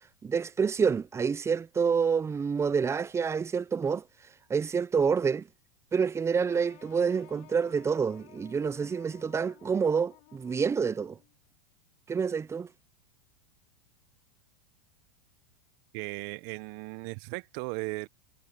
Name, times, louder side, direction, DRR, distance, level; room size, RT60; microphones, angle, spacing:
voice 1, 0.2-4.0 4.5-5.5 5.9-11.2 12.1-12.7, right 6 dB, 15° right, 0.6 m, -28 dB
sound 1, 6.5-11.3, left 26 dB, 55° left, 3.1 m, -56 dB
voice 2, 15.9-18.1, right 28 dB, 50° right, 1.1 m, -37 dB
hypercardioid pair, 110°, 19 cm